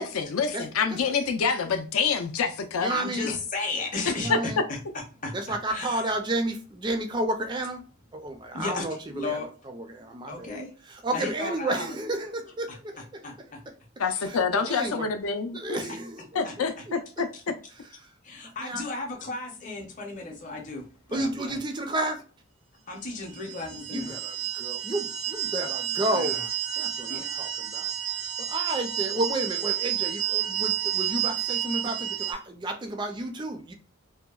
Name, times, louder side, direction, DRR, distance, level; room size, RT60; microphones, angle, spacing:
voice 1, 0.0-2.9 3.2-3.4 4.3-4.4 14.0-15.8 16.4-17.3, left 5 dB, 85° left, 0.5 m, -27 dB
voice 2, 0.5-1.0 2.8-3.3 4.2-4.6 5.3-7.8 8.1-9.4 9.7-10.5 10.9-13.2 14.2-15.1 15.5-17.2 18.0-18.1 18.4-18.8 21.1-22.2 23.9-26.4 26.8-27.9 28.2-33.7, right 1 dB, 20° right, 0.3 m, -32 dB
voice 3, 2.9-6.0 8.5-8.9 9.1-9.5 10.3-10.7 11.1-11.9 12.7-13.6 15.9-16.0 16.4-16.8 17.3-17.4 18.2-21.6 22.9-24.2 26.1-26.5 27.0-27.4, left 3 dB, 35° left, 0.6 m, -35 dB
sound 1, 23.3-32.3, right 12 dB, 65° right, 0.6 m, -30 dB
2.7 x 2.1 x 2.2 m
head